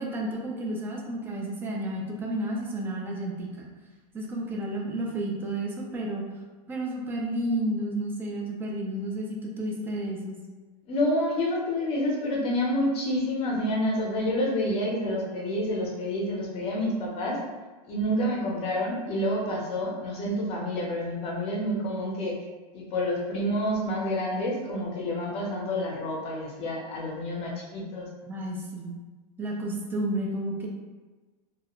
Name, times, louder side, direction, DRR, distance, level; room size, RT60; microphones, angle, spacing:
voice 1, 0.0-3.7 4.1-6.2 6.7-10.4 28.3-29.0 29.4-30.7, right 1 dB, 10° right, -1 dB, 0.3 m, -31 dB
voice 2, 10.9-17.4 17.9-22.4 22.7-28.1, left 1 dB, 30° left, -3 dB, 0.7 m, -28 dB
2.4 x 2.1 x 2.9 m, 1.3 s
supercardioid pair, 145°, 20 cm